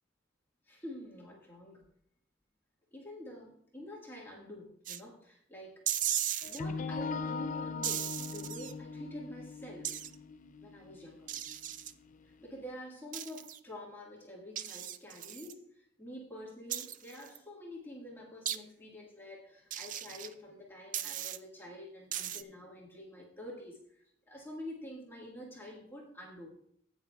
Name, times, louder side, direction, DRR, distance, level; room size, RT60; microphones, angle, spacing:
voice 1, 0.7-1.9 2.9-5.7 6.5-10.1 10.6-11.3 12.4-26.5, left 1 dB, 10° left, -4 dB, 1.6 m, -47 dB
sound 1, 4.9-5.0 5.9-6.6 7.8-8.7 9.8-10.2 11.3-11.9 13.1-13.6 14.6-15.5 16.7-17.4 18.5-18.6 19.7-20.3 20.9-21.4 22.1-22.4, right 11 dB, 40° right, 0.4 m, -36 dB
sound 2, 6.4-12.3, left 4 dB, 40° left, 0.4 m, -40 dB
15.5 x 9.1 x 2.3 m, 0.68 s
head